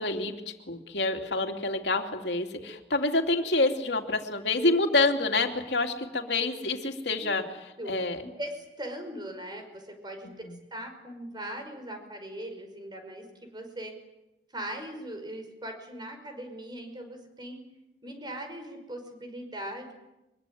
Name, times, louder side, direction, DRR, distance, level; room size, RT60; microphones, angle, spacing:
voice 1, 0.0-7.4 7.9-8.2 10.2-10.6, left 2 dB, 70° left, 4 dB, 2.9 m, -27 dB
voice 2, 7.8-10.3 10.7-14.0 14.5-17.6 18.0-19.9, right 1 dB, 25° right, 6 dB, 5.5 m, -40 dB
24.0 x 23.0 x 9.3 m, 0.96 s
head